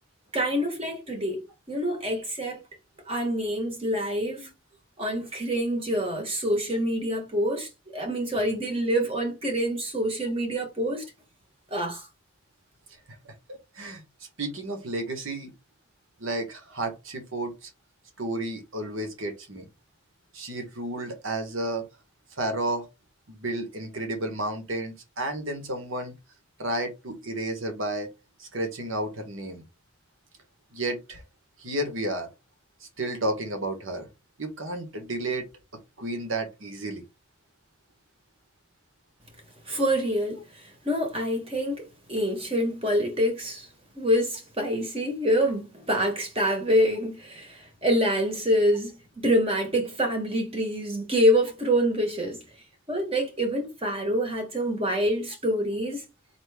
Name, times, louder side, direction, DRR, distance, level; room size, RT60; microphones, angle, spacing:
voice 1, 0.3-1.4 1.7-2.6 3.1-4.5 5.0-11.0 11.7-12.1 39.7-43.7 43.9-52.4 52.9-56.0, equal, 25° right, 1.1 m, -26 dB
voice 2, 14.4-15.5 16.2-17.7 18.2-19.6 20.3-21.9 22.4-22.9 23.3-26.1 26.6-28.1 28.4-29.6 30.7-31.2 31.6-32.3 33.0-34.1 34.4-35.4 36.0-37.0, right 1 dB, 65° right, 1.3 m, -32 dB
4.3 x 2.8 x 3.4 m
head